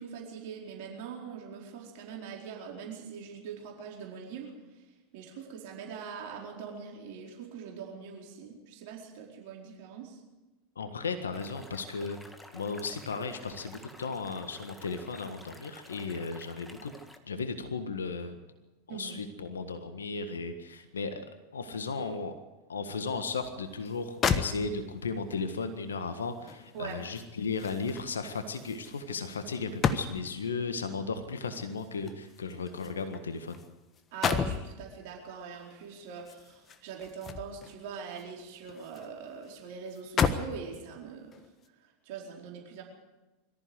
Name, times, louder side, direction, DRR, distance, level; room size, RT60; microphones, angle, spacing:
voice 1, 0.0-10.2 18.9-19.2 26.7-27.1 32.5-32.6 34.1-42.8, right 6 dB, 60° right, -1 dB, 4.6 m, -43 dB
voice 2, 10.7-12.2 12.5-16.9 17.2-18.4 18.9-21.3 21.5-22.3 22.7-33.6, left 4 dB, 80° left, 9 dB, 1.6 m, -35 dB
sound 1, 11.3-17.2, left 1 dB, 10° left, 2.1 m, -51 dB
sound 2, 23.9-24.0 24.2-25.1 26.5-30.5 31.5-33.7 34.0-34.7 36.2-37.8 38.2-39.1 39.4-39.5 39.9-40.6 41.3-41.5, left 6 dB, 30° left, 1.4 m, -33 dB
23.0 x 14.5 x 8.1 m, 1.1 s
figure-of-eight pair, 85°, 0 cm